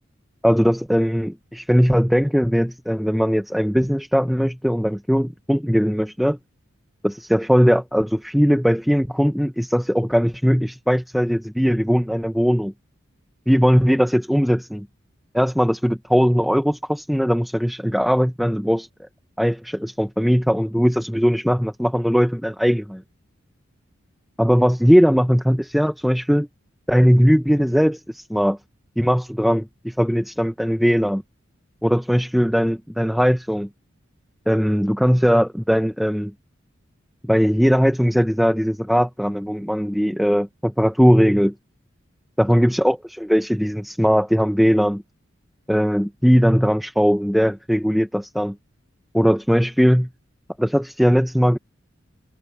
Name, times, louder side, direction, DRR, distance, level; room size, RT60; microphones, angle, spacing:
voice 1, 0.4-6.4 7.0-12.7 13.5-14.9 15.3-18.9 19.4-23.0 24.4-26.5 26.9-28.6 29.0-31.2 31.8-33.7 34.5-36.3 37.2-41.5 42.4-45.0 45.7-48.6 49.1-50.1 50.6-51.6, equal, ahead, 0.8 m, -19 dB
head